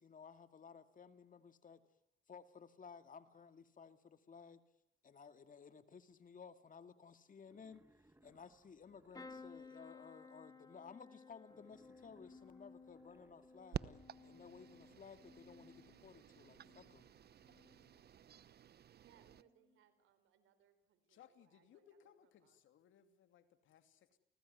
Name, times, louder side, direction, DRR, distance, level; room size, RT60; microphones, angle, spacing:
voice 1, 0.0-1.8 2.3-4.6 5.0-7.8 8.2-17.1, left 6 dB, 45° left, 9 dB, 2.3 m, -57 dB
Wild animals, 7.4-9.9 11.4-13.9, right 2 dB, 10° right, 1.9 m, -71 dB
sound 1, 9.1-17.0 17.4-18.0 19.2-19.4 19.7-19.8, left 4 dB, 20° left, 2.8 m, -58 dB
sound 2, 13.7-19.4, right 9 dB, 55° right, 1.0 m, -51 dB
voice 2, 18.9-22.6, right 10 dB, 85° right, 11 dB, 4.4 m, -72 dB
voice 3, 21.1-24.2, left 9 dB, 75° left, 9 dB, 2.8 m, -66 dB
29.5 x 19.5 x 9.6 m, 0.75 s
cardioid pair, 90°, 20 cm